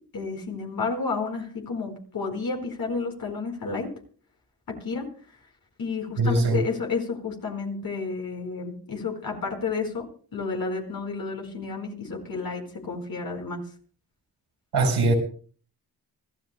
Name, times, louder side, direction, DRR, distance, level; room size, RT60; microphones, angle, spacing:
voice 1, 0.1-3.9 4.7-5.1 5.8-10.0 10.3-13.6, left 4 dB, 60° left, 1 dB, 4.6 m, -31 dB
voice 2, 6.2-6.6 14.7-15.2, right 2 dB, 85° right, 3 dB, 4.5 m, -21 dB
26.0 x 14.0 x 2.2 m, 0.42 s
cardioid pair, 85°, 39 cm